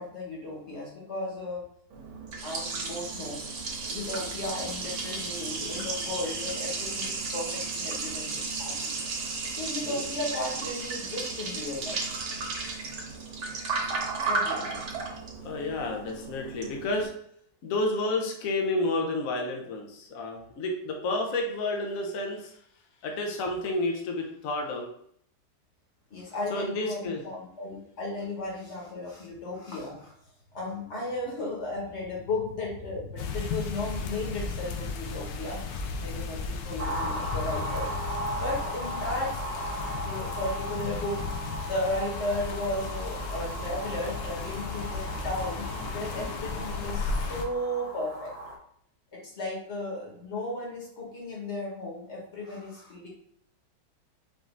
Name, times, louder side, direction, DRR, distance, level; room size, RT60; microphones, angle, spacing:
voice 1, 0.0-1.6 2.4-3.4 3.8-8.9 9.5-12.0 14.2-14.9 26.1-30.1 30.5-37.9 38.3-39.3 40.0-41.2 41.6-48.3 49.1-53.1, left 2 dB, 40° left, -3 dB, 1.5 m, -35 dB
Liquid, 1.9-17.1, right 4 dB, 90° right, 1.7 m, -34 dB
voice 2, 15.4-17.1 17.6-22.6 23.0-24.9 26.5-27.2, left 2 dB, 55° left, 1 dB, 1.0 m, -30 dB
sound 1, 33.2-47.4, left 4 dB, 75° left, 1.2 m, -35 dB
sound 2, 36.8-48.6, right 1 dB, 40° right, 0.5 m, -37 dB
5.1 x 2.7 x 3.7 m, 0.68 s
omnidirectional pair, 2.1 m